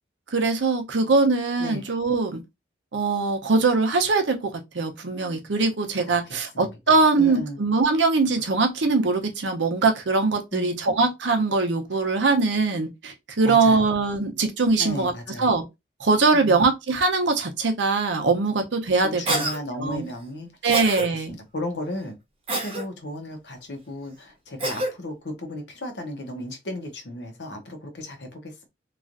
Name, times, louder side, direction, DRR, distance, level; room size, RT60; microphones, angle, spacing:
voice 1, 0.3-2.4 2.9-15.1 15.4-15.6 16.0-19.4 19.8-20.1 20.6-21.3, right 3 dB, 85° right, 0.7 m, -22 dB
voice 2, 7.2-7.6 10.5-10.8 13.4-13.8 14.8-15.5 16.3-16.6 19.0-22.2 22.6-28.7, left 1 dB, 70° left, 0.9 m, -35 dB
Cough, 19.3-19.6 20.7-21.1 22.5-22.8 24.6-24.9, right 2 dB, 30° right, 0.7 m, -26 dB
3.0 x 2.4 x 2.5 m
head